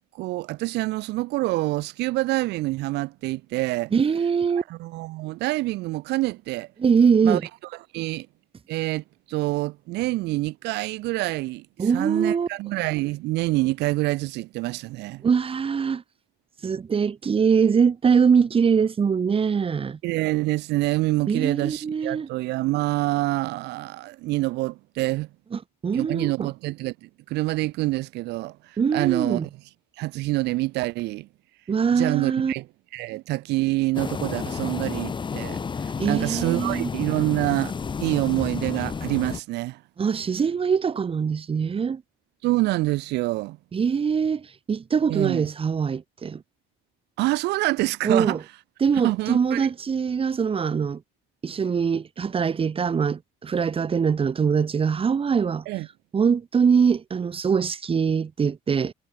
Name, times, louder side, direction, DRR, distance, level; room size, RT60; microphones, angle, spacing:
voice 1, 0.1-3.9 4.5-6.7 7.2-7.4 7.9-8.3 8.7-15.2 20.0-25.3 25.9-29.5 30.0-31.3 31.9-32.7 32.9-37.7 38.0-39.8 42.4-43.6 45.1-45.5 47.2-48.4 48.9-49.7 55.7-55.9, right 19 dB, 85° right, 1.1 m, -26 dB
voice 2, 3.9-4.6 6.8-7.4 11.8-12.5 15.2-16.0 16.6-20.0 21.3-22.3 25.5-26.5 28.8-29.5 31.7-32.5 36.0-36.9 40.0-42.0 43.7-46.4 48.0-48.4 48.8-51.0 51.4-55.6 56.1-58.9, right 6 dB, 35° right, 2.2 m, -23 dB
sound 1, 33.9-39.4, left 5 dB, 30° left, 1.3 m, -31 dB
cardioid pair, 110°, 17 cm